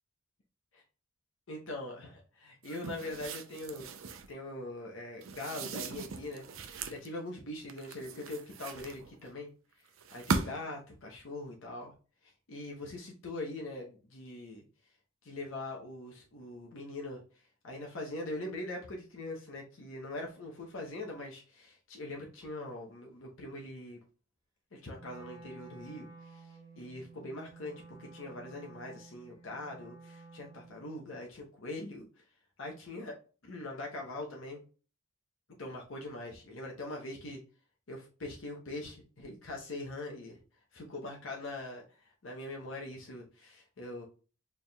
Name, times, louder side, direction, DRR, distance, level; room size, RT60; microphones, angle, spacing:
voice 1, 1.5-3.9 4.3-9.5 10.1-11.9 12.2-14.6 15.2-17.2 17.6-24.0 24.7-32.1 32.6-33.1 33.4-34.6 35.6-37.4 37.9-40.4 40.7-44.1, left 2 dB, 70° left, -1 dB, 0.8 m, -42 dB
sound 1, 2.6-4.3 5.2-7.1 7.7-9.3 10.0-10.8, right 4 dB, 75° right, 0.5 m, -38 dB
Wind instrument woodwind instrument, 25.0-31.0, right 3 dB, 20° right, 0.9 m, -53 dB
4.4 x 3.5 x 2.3 m, 0.37 s
head